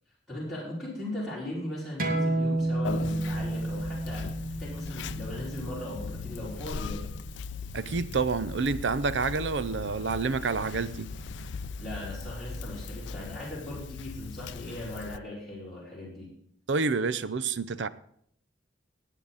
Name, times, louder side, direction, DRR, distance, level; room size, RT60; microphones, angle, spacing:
voice 1, 0.3-4.3 4.6-7.1 11.8-16.3, left 1 dB, ahead, 5.1 m, -38 dB
sound 1, 2.0-7.2, right 2 dB, 50° right, 2.0 m, -31 dB
sound 2, 2.5-13.3, equal, 30° right, 5.6 m, -45 dB
Conversation, 2.8-15.2, left 6 dB, 75° left, 0.4 m, -40 dB
voice 2, 7.7-11.1 16.7-17.9, right 4 dB, 80° right, 0.6 m, -28 dB
18.5 x 9.0 x 4.0 m
head